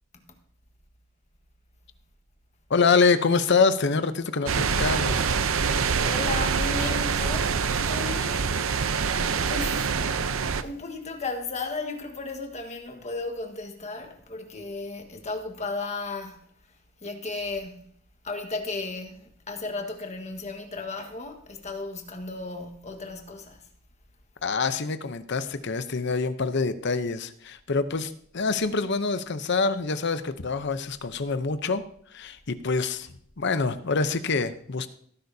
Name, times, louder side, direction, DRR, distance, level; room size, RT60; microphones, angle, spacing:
voice 1, 2.7-5.3 24.4-31.8 32.1-33.1 33.4-34.9, left 4 dB, 55° left, 0.8 m, -25 dB
sound 1, 4.5-10.6, right 5 dB, 80° right, 0.7 m, -25 dB
voice 2, 6.0-8.5 9.4-9.9 10.6-16.4 17.0-17.9 18.2-23.7, left 3 dB, 35° left, 1.5 m, -35 dB
17.0 x 10.5 x 2.8 m
head